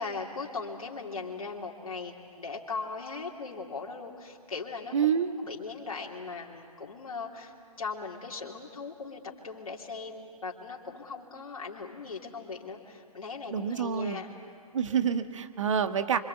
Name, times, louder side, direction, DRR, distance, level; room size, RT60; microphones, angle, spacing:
voice 1, 0.0-4.9 5.4-14.3, left 4 dB, 65° left, -2 dB, 3.1 m, -39 dB
voice 2, 4.9-5.3 13.5-14.2 14.7-16.2, right 7 dB, 55° right, 9 dB, 1.5 m, -27 dB
29.0 x 25.0 x 8.1 m, 2.2 s
figure-of-eight pair, 130°, 19 cm